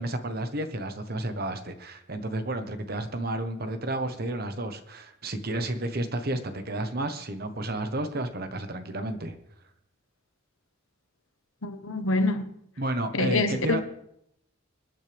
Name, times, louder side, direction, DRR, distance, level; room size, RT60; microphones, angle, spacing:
voice 1, 0.0-9.4 12.8-13.8, right 1 dB, 45° right, 1.2 m, -31 dB
voice 2, 11.6-12.5 13.1-13.8, left 2 dB, 75° left, 1.3 m, -26 dB
25.5 x 9.1 x 3.5 m
head